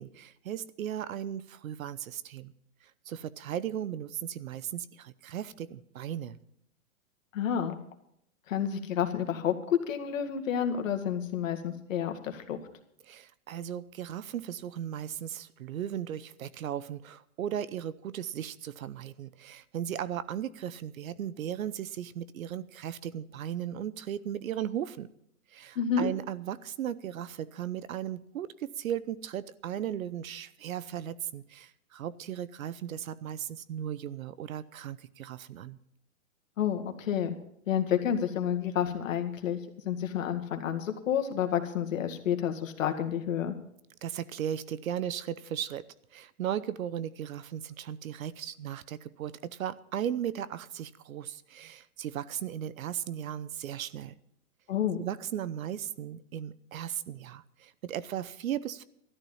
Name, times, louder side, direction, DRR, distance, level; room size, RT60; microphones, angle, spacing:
voice 1, 0.0-2.5 3.1-6.4 13.1-25.1 25.5-35.8 44.0-45.8 46.1-54.2 55.0-58.8, right 10 dB, 70° right, 18 dB, 0.9 m, -36 dB
voice 2, 7.3-7.8 8.5-12.6 25.8-26.1 36.6-37.3 37.7-39.6 39.9-43.6 54.7-55.0, left 9 dB, 65° left, 6 dB, 2.1 m, -30 dB
13.5 x 12.5 x 5.6 m, 0.73 s
hypercardioid pair, 145°, 43 cm